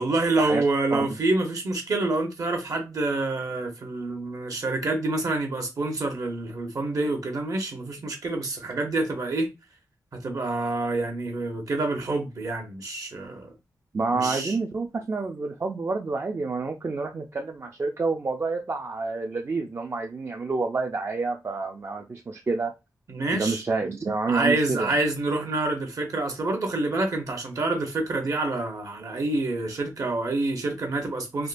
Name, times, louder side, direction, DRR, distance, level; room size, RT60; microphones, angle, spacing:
voice 1, 0.0-9.5 10.2-13.5 14.1-14.6 23.1-23.6 24.3-31.5, right 2 dB, 55° right, 0.9 m, -27 dB
voice 2, 13.9-22.7 23.3-25.0, right 3 dB, 40° right, 0.4 m, -28 dB
3.5 x 2.2 x 2.5 m
wide cardioid pair, 90°, 7 cm